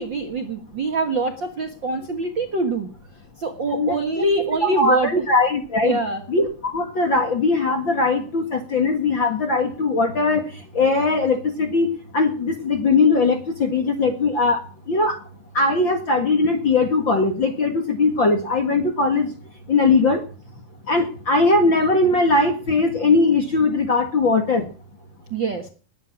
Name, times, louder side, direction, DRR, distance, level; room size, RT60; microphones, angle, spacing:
voice 1, 0.0-2.9 3.4-5.1 5.8-6.2 25.3-25.7, right 2 dB, 45° right, 4 dB, 1.6 m, -24 dB
voice 2, 3.7-4.3 4.6-6.0 6.3-10.4 10.7-14.6 14.9-15.2 15.5-19.3 19.7-20.2 20.9-24.7, left 3 dB, 45° left, 6 dB, 1.9 m, -20 dB
20.0 x 10.0 x 6.0 m, 0.40 s
omnidirectional pair, 4.2 m